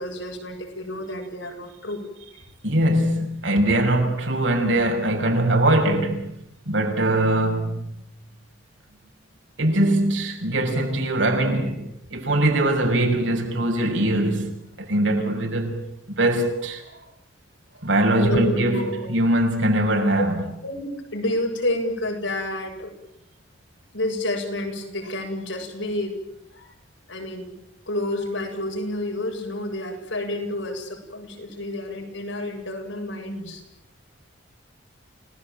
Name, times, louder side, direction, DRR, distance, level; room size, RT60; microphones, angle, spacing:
voice 1, 0.0-2.0 2.3-2.5 18.2-19.1 20.2-20.3 20.6-22.9 23.9-26.1 26.5-26.7 27.1-27.5 27.8-33.6, left 1 dB, 85° left, 7.8 m, -29 dB
voice 2, 2.6-6.3 6.7-7.9 9.6-11.8 12.1-16.8 17.8-20.3, right 1 dB, 75° right, 6.4 m, -22 dB
29.5 x 18.5 x 9.1 m
head